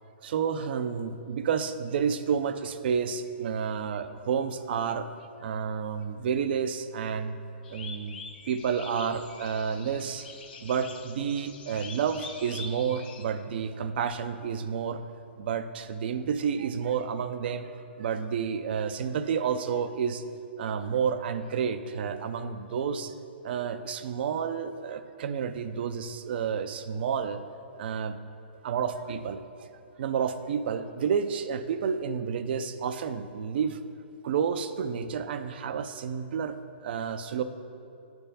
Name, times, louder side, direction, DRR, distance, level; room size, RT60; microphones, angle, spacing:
voice 1, 0.2-5.1 5.4-7.4 7.7-8.2 8.5-10.3 10.6-15.0 15.4-17.7 18.0-20.2 20.6-23.1 23.4-27.4 27.8-28.1 28.6-29.4 30.0-33.8 34.2-37.4, right 7 dB, 60° right, 10 dB, 0.5 m, -30 dB
sound 1, 7.6-13.2, left 4 dB, 55° left, 0.9 m, -45 dB
10.0 x 3.5 x 6.9 m, 2.6 s
hypercardioid pair, 140°, 6 cm